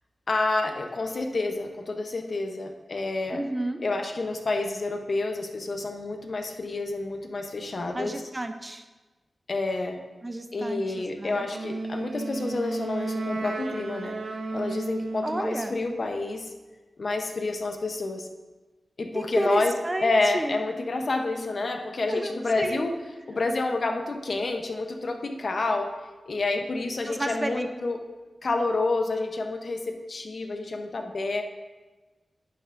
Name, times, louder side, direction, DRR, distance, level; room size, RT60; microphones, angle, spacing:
voice 1, 0.3-3.4 3.8-8.2 9.5-10.0 10.5-14.2 14.5-16.5 17.0-18.3 19.0-19.7 20.0-23.0 23.3-25.9 26.3-28.0 28.4-31.4, left 3 dB, 55° left, 4 dB, 0.8 m, -29 dB
voice 2, 3.3-3.8 7.9-8.8 10.2-11.5 15.2-15.8 19.1-20.6 22.1-22.9 27.1-27.7, right 1 dB, 25° right, 7 dB, 0.5 m, -31 dB
Wind instrument woodwind instrument, 11.5-15.7, right 3 dB, 70° right, 0.7 m, -33 dB
10.0 x 6.8 x 2.5 m, 1.2 s
wide cardioid pair, 85°, 0 cm